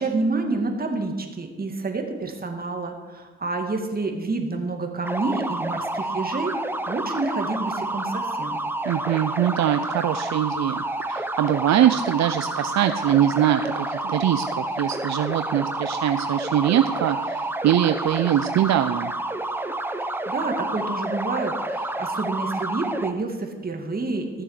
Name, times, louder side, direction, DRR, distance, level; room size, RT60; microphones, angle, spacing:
voice 1, 0.0-6.5 6.9-8.6 20.1-24.4, right 3 dB, 30° right, 3 dB, 2.2 m, -28 dB
sound 1, 5.0-23.1, right 1 dB, 5° right, 0.8 m, -29 dB
voice 2, 8.9-19.1, right 11 dB, 65° right, 10 dB, 0.6 m, -22 dB
14.5 x 7.4 x 6.6 m, 1.3 s
cardioid pair, 95°, 30 cm